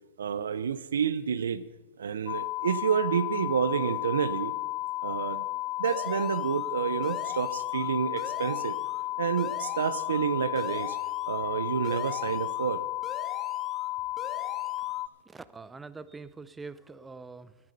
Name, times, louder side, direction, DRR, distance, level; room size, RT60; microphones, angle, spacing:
voice 1, 0.2-1.6 2.0-4.5 5.0-5.5 5.8-8.8 9.2-11.0 11.3-12.8, right 7 dB, 80° right, 14 dB, 0.7 m, -29 dB
sound 1, 2.3-15.1, left 17 dB, 45° left, 0.4 m, -33 dB
sound 2, 5.8-6.7 7.0-7.9 8.2-9.0 9.4-10.2 10.6-11.4 11.8-12.7 13.0-13.9 14.2-15.0, left 2 dB, 15° left, 2.0 m, -44 dB
voice 2, 15.3-17.6, right 4 dB, 10° right, 15 dB, 0.6 m, -44 dB
11.5 x 10.5 x 6.7 m, 1.2 s
hypercardioid pair, 120°, 0 cm